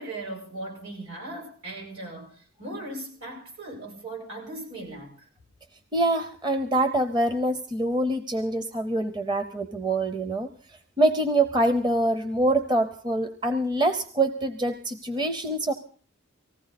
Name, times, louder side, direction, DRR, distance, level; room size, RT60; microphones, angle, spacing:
voice 1, 0.0-5.3, right 2 dB, 70° right, 1 dB, 6.6 m, -38 dB
voice 2, 5.9-10.5 11.0-15.7, right 1 dB, 20° right, 9 dB, 0.8 m, -25 dB
19.0 x 15.5 x 4.2 m, 0.41 s
head